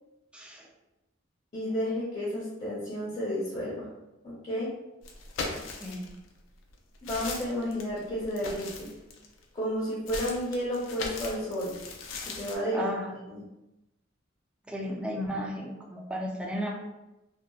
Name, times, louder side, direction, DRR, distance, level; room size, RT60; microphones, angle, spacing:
voice 1, 0.3-0.7 5.8-6.1 12.7-13.1 14.7-16.8, equal, 5° right, -1 dB, 0.4 m, -34 dB
voice 2, 1.5-3.9 4.2-4.7 7.0-8.9 9.5-11.7 12.2-12.9 13.3-13.4, equal, 35° left, -8 dB, 0.7 m, -32 dB
sound 1, 5.0-6.2 6.7-9.4 10.1-12.6, left 3 dB, 85° left, 0.4 m, -39 dB
2.8 x 2.0 x 2.3 m, 0.97 s
head